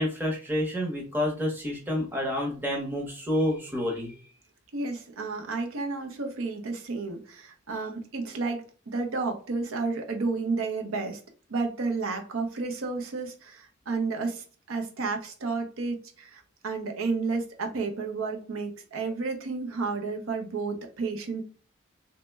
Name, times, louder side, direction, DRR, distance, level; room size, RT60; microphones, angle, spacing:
voice 1, 0.0-4.2, left 1 dB, 10° right, 0.7 m, -29 dB
voice 2, 4.7-11.2 11.5-21.4, right 4 dB, 75° right, 0.6 m, -31 dB
3.0 x 2.1 x 3.2 m
head